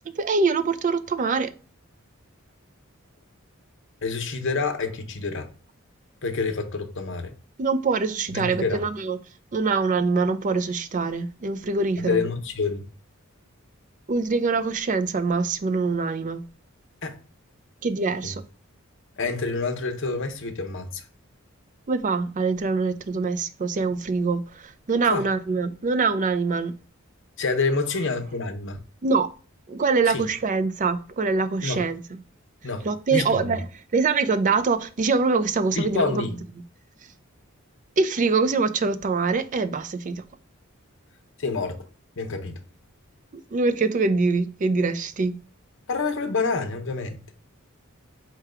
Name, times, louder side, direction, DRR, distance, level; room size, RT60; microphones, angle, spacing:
voice 1, 0.2-1.5 7.6-9.2 9.5-12.2 14.1-16.4 17.8-18.4 21.9-26.8 29.0-29.3 29.7-32.0 32.8-33.7 33.9-36.2 38.0-40.2 43.5-45.4, right 4 dB, 40° right, 0.4 m, -24 dB
voice 2, 4.0-5.5 6.2-7.3 8.3-8.8 12.0-12.8 17.0-17.2 18.2-18.3 19.2-21.0 25.1-25.2 27.4-28.8 30.1-30.2 31.6-31.8 32.6-33.6 35.7-36.3 41.4-41.8 42.2-42.6 45.9-47.2, left 4 dB, 60° left, 0.7 m, -27 dB
4.6 x 2.2 x 4.8 m
head